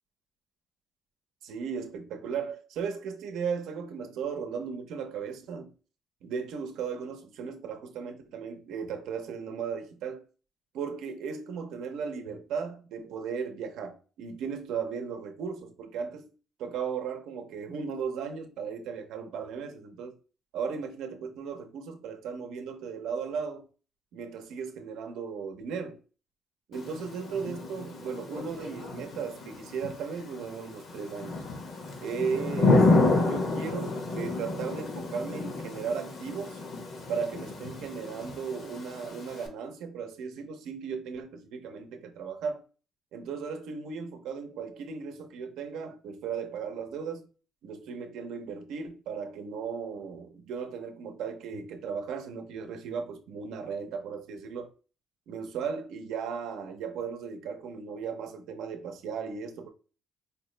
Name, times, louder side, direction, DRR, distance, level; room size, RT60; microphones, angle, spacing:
voice 1, 1.4-5.7 6.2-10.2 10.7-16.3 16.6-20.2 20.5-23.7 24.1-26.0 26.7-31.4 32.0-32.9 33.3-36.6 37.1-42.6 43.1-47.3 47.6-54.7 55.3-59.7, right 6 dB, 85° right, 0.7 m, -36 dB
Thunder / Rain, 26.7-39.5, left 2 dB, 55° left, 0.9 m, -30 dB
4.4 x 2.0 x 3.2 m
cardioid pair, 120°, 0 cm